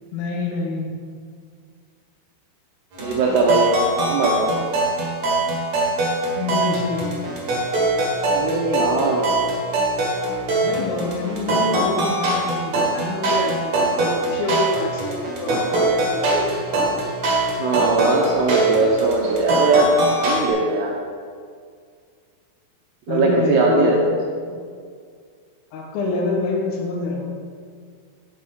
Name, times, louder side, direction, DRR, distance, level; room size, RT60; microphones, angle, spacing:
voice 1, 0.1-0.9 6.4-7.1 10.6-16.6 23.1-24.2 24.5-24.6 25.7-27.3, left 3 dB, 80° left, 1 dB, 3.9 m, -27 dB
sound 1, 2.9-20.5, right 2 dB, 50° right, 2.1 m, -23 dB
voice 2, 3.0-3.7 4.0-4.5 8.3-9.3 17.6-19.9 20.2-20.9 23.1-24.0, right 3 dB, 75° right, -1 dB, 2.5 m, -19 dB
10.0 x 6.8 x 5.8 m, 2.1 s
omnidirectional pair, 5.8 m